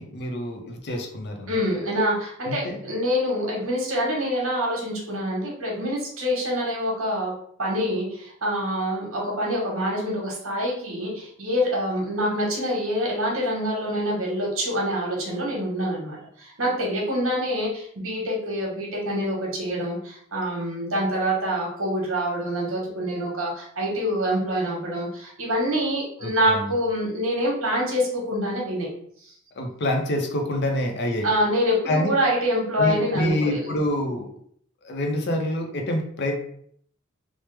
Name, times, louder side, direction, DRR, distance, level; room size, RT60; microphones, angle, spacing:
voice 1, 0.0-1.5 2.4-2.8 26.2-26.7 29.6-31.3 31.9-32.1 32.8-34.3 34.8-36.4, left 1 dB, 55° left, 3 dB, 0.6 m, -26 dB
voice 2, 1.5-7.3 7.6-28.9 29.2-29.3 31.2-33.7, equal, 85° right, -3 dB, 1.1 m, -26 dB
3.1 x 2.0 x 3.2 m, 0.64 s
head